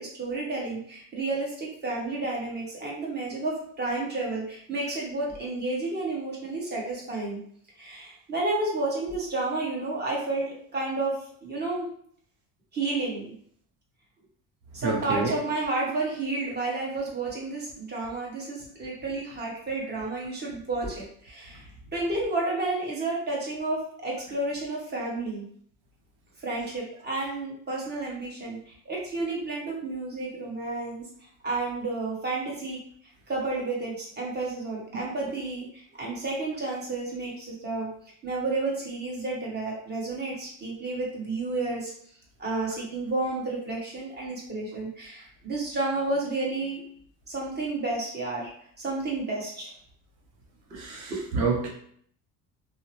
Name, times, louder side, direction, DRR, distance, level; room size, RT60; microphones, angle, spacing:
voice 1, 0.0-7.4 7.8-11.9 12.7-13.3 14.7-21.7 21.9-25.4 26.4-31.0 31.4-32.8 33.3-37.9 38.2-41.9 42.4-46.8 47.3-48.5 48.8-49.7, right 2 dB, 25° right, -4 dB, 1.1 m, -31 dB
voice 2, 14.8-15.4 50.7-51.7, right 4 dB, 85° right, 0 dB, 0.7 m, -28 dB
2.7 x 2.0 x 2.9 m, 0.62 s
supercardioid pair, 95°, 40 cm